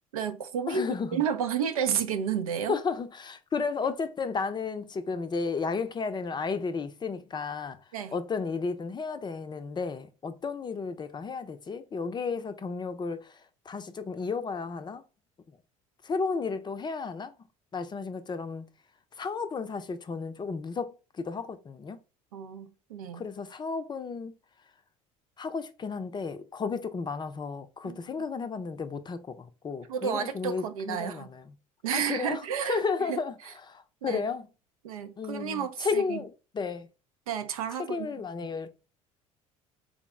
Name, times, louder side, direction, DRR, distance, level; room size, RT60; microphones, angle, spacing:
voice 1, 0.1-0.8 1.1-2.8 7.9-8.2 22.3-23.3 27.8-28.3 29.9-31.3 31.8-33.2 33.4-33.5 34.0-34.2 34.8-36.2 37.3-38.2, right 7 dB, 85° right, 0.5 m, -31 dB
voice 2, 0.7-1.2 2.7-7.8 8.1-13.3 13.7-15.0 16.0-17.3 17.7-18.7 19.2-22.0 23.1-24.3 25.4-31.4 31.9-33.3 33.7-34.5 35.2-36.9 37.9-38.7, left 5 dB, 25° left, 0.5 m, -33 dB
3.6 x 2.0 x 3.5 m
hypercardioid pair, 65°, 18 cm